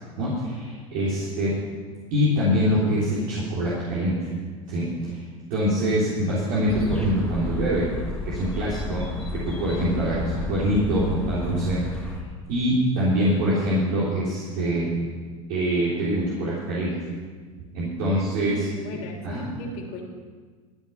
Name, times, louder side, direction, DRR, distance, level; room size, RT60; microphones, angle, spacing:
voice 1, 0.2-1.6 2.1-4.3 4.7-5.2 5.5-7.9 8.3-9.0 9.3-11.8 12.5-14.9 15.5-16.9 17.7-18.7 19.2-19.5, equal, 70° right, -7 dB, 3.7 m, -24 dB
sound 1, 6.7-12.2, left 2 dB, 5° left, 2.5 m, -32 dB
voice 2, 18.5-20.0, left 1 dB, 55° left, -1 dB, 3.0 m, -37 dB
14.0 x 9.5 x 5.8 m, 1.5 s
hypercardioid pair, 100°, 18 cm